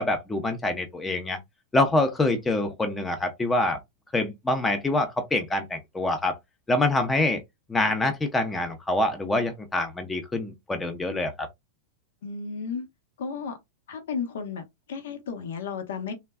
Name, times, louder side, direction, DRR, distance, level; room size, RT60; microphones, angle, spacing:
voice 1, 0.0-1.4 1.7-3.8 4.1-6.4 6.7-7.4 7.7-11.5, left 2 dB, 15° left, 0.6 m, -25 dB
voice 2, 12.2-12.9 13.2-13.6 13.9-16.1, left 5 dB, 70° left, 0.8 m, -33 dB
3.3 x 2.2 x 2.2 m
hypercardioid pair, 100°, 0 cm